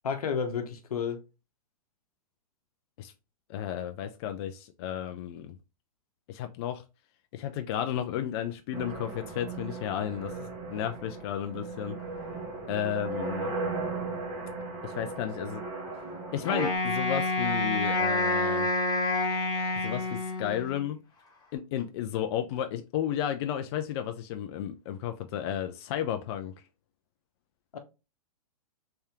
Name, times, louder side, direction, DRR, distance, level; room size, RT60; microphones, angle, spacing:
voice 1, 0.0-1.2 27.7-27.8, left 6 dB, 85° left, 0.9 m, -31 dB
voice 2, 3.5-5.5 6.3-6.8 7.3-12.0 12.7-13.6 14.8-15.6 16.3-18.7 19.7-21.0 21.5-26.5, left 10 dB, 45° left, 0.5 m, -33 dB
sound 1, 8.7-16.8, right 3 dB, 45° right, 1.4 m, -37 dB
Wind instrument woodwind instrument, 16.4-20.8, left 2 dB, 20° left, 1.4 m, -28 dB
3.4 x 2.8 x 3.5 m
hypercardioid pair, 135°, 19 cm